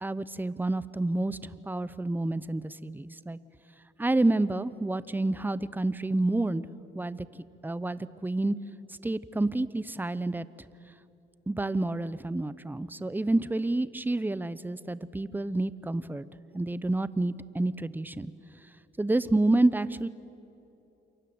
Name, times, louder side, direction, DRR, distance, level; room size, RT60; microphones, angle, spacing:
voice 1, 0.0-1.4 1.6-3.4 4.0-6.7 6.9-7.3 7.6-8.6 9.0-10.5 11.5-16.3 16.5-18.3 19.0-20.1, right 2 dB, 10° right, 16 dB, 0.8 m, -28 dB
28.0 x 23.5 x 7.9 m, 3.0 s
cardioid pair, 90°, 20 cm